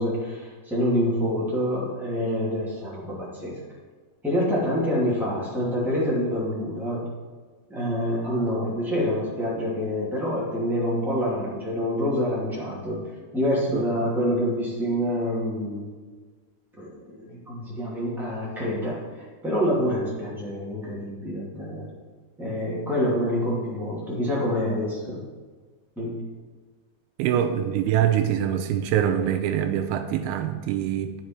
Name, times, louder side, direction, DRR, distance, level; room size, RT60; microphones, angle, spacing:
voice 1, 0.0-3.5 4.2-7.1 7.7-13.0 13.3-15.9 16.8-21.9 22.4-25.2 25.9-26.2, equal, ahead, -7 dB, 0.6 m, -26 dB
voice 2, 27.2-31.1, right 10 dB, 85° right, 7 dB, 3.0 m, -24 dB
10.5 x 7.4 x 4.5 m, 1.4 s
omnidirectional pair, 5.2 m